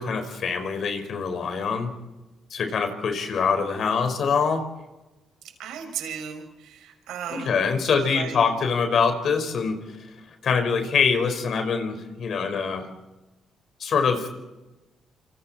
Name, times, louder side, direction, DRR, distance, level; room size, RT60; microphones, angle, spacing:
voice 1, 0.0-1.9 2.5-4.6 7.3-9.7 10.4-12.9 13.8-14.3, left 5 dB, 60° left, 6 dB, 5.1 m, -24 dB
voice 2, 5.6-7.6 8.0-8.4, right 8 dB, 85° right, 4 dB, 6.2 m, -35 dB
28.0 x 27.0 x 4.4 m, 1.1 s
cardioid pair, 90°, 0 cm